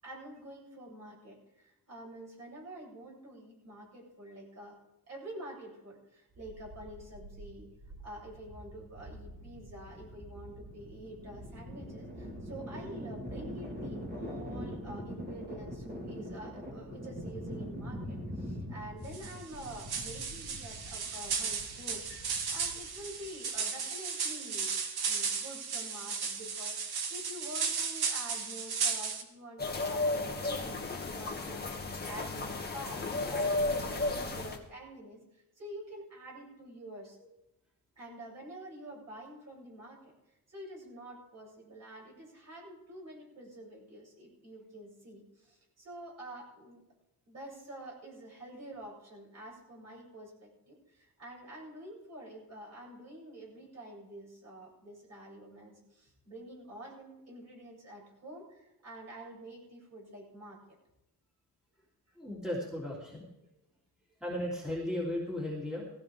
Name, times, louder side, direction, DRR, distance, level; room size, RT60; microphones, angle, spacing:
voice 1, 0.0-7.7 8.0-24.7 25.0-37.2 38.0-40.1 40.5-46.8 47.3-60.6, right 1 dB, 45° right, -3 dB, 7.9 m, -48 dB
sound 1, 6.3-23.3, equal, 25° right, 4.0 m, -43 dB
sound 2, 19.1-29.2, right 5 dB, 75° right, 1.9 m, -35 dB
sound 3, 29.6-34.6, left 2 dB, 25° left, 1.8 m, -33 dB
voice 2, 62.2-63.3 64.2-65.8, left 1 dB, ahead, -5 dB, 3.3 m, -35 dB
19.0 x 16.0 x 3.7 m, 0.90 s
wide cardioid pair, 150°, 38 cm